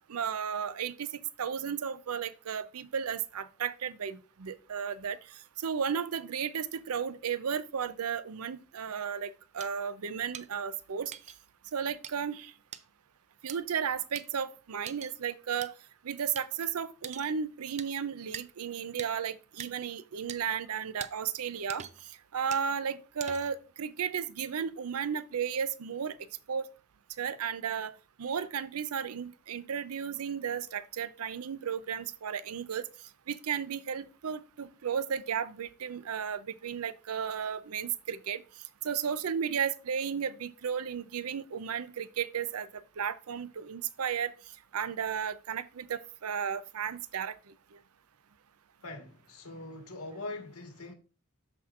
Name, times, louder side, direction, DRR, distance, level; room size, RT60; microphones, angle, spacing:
voice 1, 0.1-1.1 1.4-5.2 5.6-11.1 11.7-12.5 13.4-15.7 16.0-21.8 22.3-26.2 26.5-26.6 27.2-32.9 33.3-38.4 38.8-42.7 43.0-44.3 44.7-47.3, right 7 dB, 85° right, 0.5 m, -34 dB
sound 1, 9.6-9.7 10.3-10.5 11.1-11.4 12.0-12.1 12.7-12.8 13.5-13.6 14.1-14.2 14.9-15.1 15.6-15.7 16.3-16.5 17.0-17.3 17.8-17.9 18.3-18.4 19.0-19.1 19.6-19.7 20.3-20.4 21.0-21.1 21.7-22.1 22.5-22.7 23.2-23.6, right 9 dB, 30° right, 0.4 m, -42 dB
voice 2, 48.8-50.9, left 2 dB, 80° left, 1.4 m, -42 dB
13.0 x 4.3 x 2.5 m
head